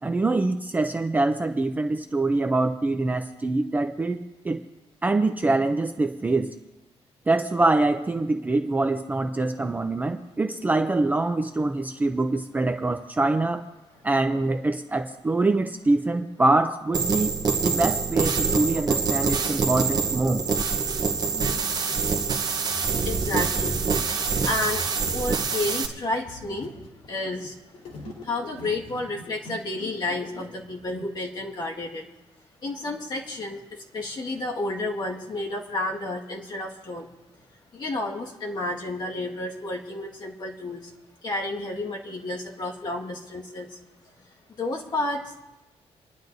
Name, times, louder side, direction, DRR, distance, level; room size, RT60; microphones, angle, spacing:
voice 1, 0.0-4.6 5.0-6.5 7.3-13.6 14.0-17.4 17.6-20.4, right 2 dB, 15° right, 6 dB, 0.5 m, -24 dB
sound 1, 16.9-25.9, right 5 dB, 35° right, 1.0 m, -25 dB
sound 2, 18.7-19.5 20.1-31.0, left 1 dB, 85° left, 3.8 m, -43 dB
voice 2, 23.0-23.9 24.4-26.8 27.1-27.6 28.2-32.1 32.6-37.1 37.7-40.9 41.2-43.8 44.6-45.4, left 2 dB, 40° left, -2 dB, 1.8 m, -31 dB
30.0 x 10.5 x 2.7 m, 1.1 s
wide cardioid pair, 175°, 11 cm